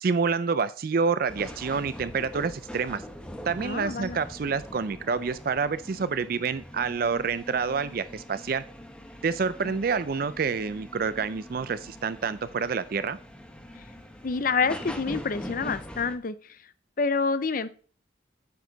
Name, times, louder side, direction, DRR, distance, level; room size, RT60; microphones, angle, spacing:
voice 1, 0.0-3.0 3.4-8.6 9.2-13.2, right 5 dB, 50° right, 14 dB, 0.4 m, -28 dB
sound 1, 1.3-16.2, equal, 5° left, 1.0 m, -43 dB
voice 2, 3.6-4.2 9.6-9.7 14.2-16.4 17.0-17.7, left 4 dB, 45° left, 14 dB, 0.5 m, -27 dB
9.3 x 6.4 x 4.0 m, 0.41 s
head